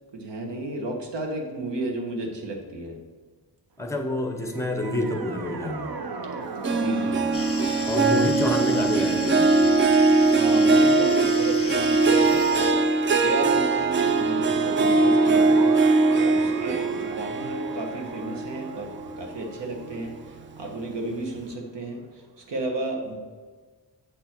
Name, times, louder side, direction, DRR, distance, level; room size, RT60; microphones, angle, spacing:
voice 1, 0.1-3.0 6.8-7.9 8.7-8.8 10.3-15.9 16.1-18.9 19.2-20.1 20.6-22.0 22.5-23.2, right 2 dB, 85° right, 2 dB, 1.5 m, -32 dB
voice 2, 3.8-5.9 7.9-9.6 16.4-16.8, left 1 dB, 5° left, 4 dB, 0.9 m, -28 dB
sound 1, 4.4-11.7 13.5-21.3, right 4 dB, 60° right, 0.7 m, -39 dB
Harp, 6.6-19.4 19.8-20.2 20.7-20.8, right 3 dB, 30° right, 0.4 m, -21 dB
sound 2, 7.3-12.7, left 6 dB, 35° left, 0.7 m, -37 dB
7.5 x 6.7 x 4.4 m, 1.5 s
wide cardioid pair, 165°, 41 cm